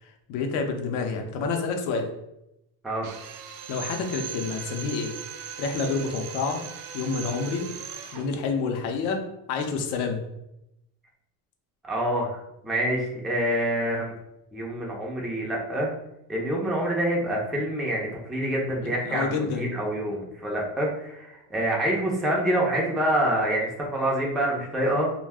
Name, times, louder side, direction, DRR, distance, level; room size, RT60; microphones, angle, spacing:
voice 1, 0.0-2.1 3.7-5.1 5.6-6.6 6.9-7.7 8.1-9.2 9.5-10.2 18.8-19.7, left 4 dB, 80° left, 4 dB, 0.7 m, -28 dB
Drill, 3.0-8.3, right 8 dB, 60° right, 0.5 m, -38 dB
voice 2, 11.8-14.1 14.5-15.9 16.3-25.1, right 1 dB, ahead, -3 dB, 0.3 m, -26 dB
2.4 x 2.2 x 3.4 m, 0.86 s
cardioid pair, 140°, 39 cm